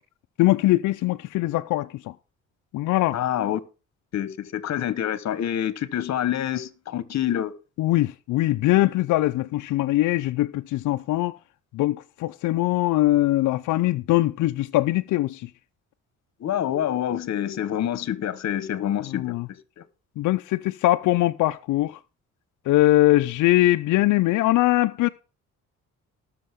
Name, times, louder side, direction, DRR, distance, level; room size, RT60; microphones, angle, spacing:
voice 1, 0.4-2.1 2.7-3.2 7.8-11.4 11.7-15.5 19.1-19.5 20.2-22.0 22.7-25.1, left 16 dB, 80° left, 0.6 m, -22 dB
voice 2, 3.1-3.6 4.1-7.5 16.4-19.4 19.8-19.9, left 11 dB, 60° left, 1.3 m, -27 dB
19.0 x 6.6 x 3.6 m
cardioid pair, 90°, 30 cm